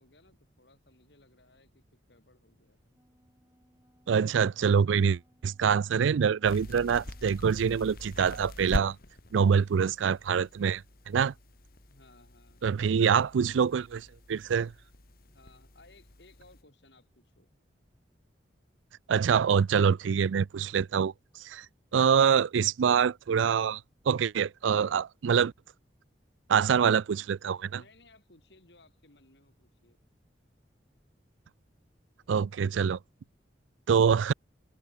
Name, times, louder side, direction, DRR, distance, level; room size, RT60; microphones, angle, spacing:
voice 1, 0.0-3.0 11.9-13.3 15.3-17.5 27.7-30.0, left 2 dB, 65° left, 5.9 m, -61 dB
Wind instrument woodwind instrument, 2.7-7.9, equal, 15° right, 5.4 m, -67 dB
voice 2, 4.1-9.0 9.3-11.3 12.6-14.7 19.1-21.1 21.4-21.7 21.9-23.8 24.1-25.5 26.5-27.8 32.3-33.0 33.9-34.3, right 7 dB, 90° right, 0.4 m, -25 dB
sound 1, 6.4-16.6, left 1 dB, 50° left, 1.9 m, -43 dB
head